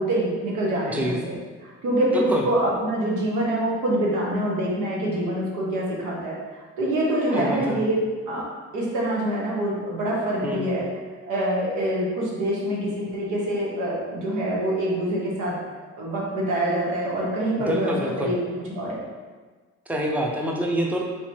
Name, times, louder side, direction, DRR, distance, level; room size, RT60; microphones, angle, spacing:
voice 1, 0.0-1.3 1.6-8.0 8.3-8.4 8.7-10.8 11.3-15.5 16.0-18.3 18.7-19.0, right 1 dB, 85° right, -4 dB, 1.3 m, -25 dB
voice 2, 2.1-2.4 7.3-7.8 10.4-10.6 17.6-18.3 19.9-21.0, equal, 5° right, 0 dB, 0.6 m, -26 dB
4.1 x 3.0 x 4.3 m, 1.4 s
cardioid pair, 90°, 30 cm